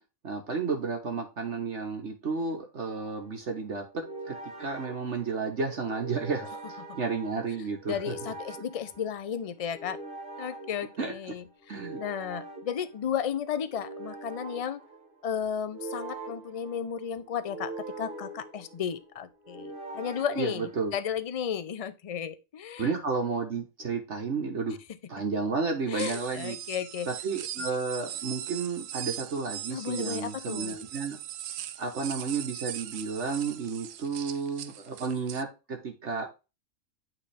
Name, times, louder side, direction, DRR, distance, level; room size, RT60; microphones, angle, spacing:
voice 1, 0.2-8.1 11.0-11.1 11.7-12.0 20.4-21.0 22.8-24.8 25.1-26.6 27.1-31.2 31.8-36.3, right 4 dB, 55° right, 1.5 m, -32 dB
sound 1, 2.9-21.2, right 2 dB, 40° right, 1.6 m, -44 dB
voice 2, 7.9-10.0 10.4-14.8 15.2-22.9 25.9-27.1 29.7-30.8, left 8 dB, 55° left, 0.4 m, -34 dB
sound 2, 26.0-35.4, right 11 dB, 75° right, 1.0 m, -40 dB
8.9 x 3.8 x 3.4 m
omnidirectional pair, 1.4 m